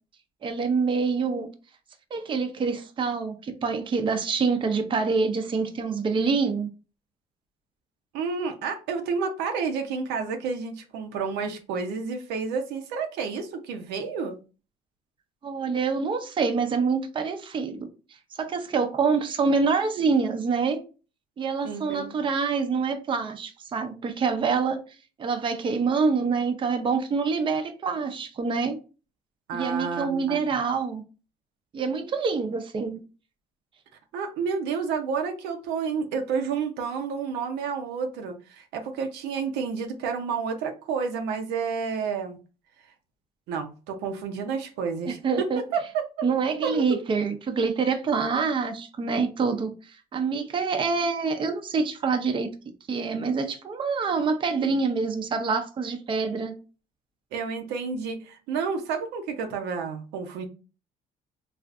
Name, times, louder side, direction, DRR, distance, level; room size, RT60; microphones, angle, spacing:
voice 1, 0.4-1.5 2.1-6.7 15.4-17.9 18.3-20.8 21.4-24.8 25.2-28.8 29.5-31.0 31.7-33.0 45.1-45.6 46.2-52.5 52.9-56.5, right 5 dB, 30° right, 0.5 m, -26 dB
voice 2, 8.1-14.4 21.6-22.2 29.5-30.4 34.1-42.4 43.5-46.0 46.6-47.0 57.3-60.5, right 5 dB, 90° right, 0.6 m, -30 dB
3.4 x 2.4 x 2.4 m
cardioid pair, 110°, 17 cm